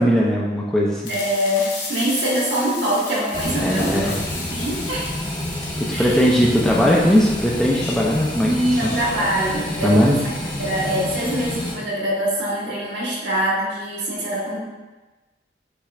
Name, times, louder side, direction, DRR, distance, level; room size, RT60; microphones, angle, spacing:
voice 1, 0.0-1.0 3.6-4.2 5.8-8.9 9.8-10.2, equal, 5° left, -4 dB, 0.3 m, -19 dB
sound 1, 1.0-9.5, left 3 dB, 70° left, 0.8 m, -35 dB
voice 2, 1.1-4.1 4.5-5.1 5.9-6.2 8.4-10.2 10.6-14.6, equal, 70° right, -5 dB, 1.3 m, -23 dB
sound 2, 3.3-11.7, left 1 dB, 25° left, 0.8 m, -29 dB
5.7 x 3.2 x 2.4 m, 1.2 s
head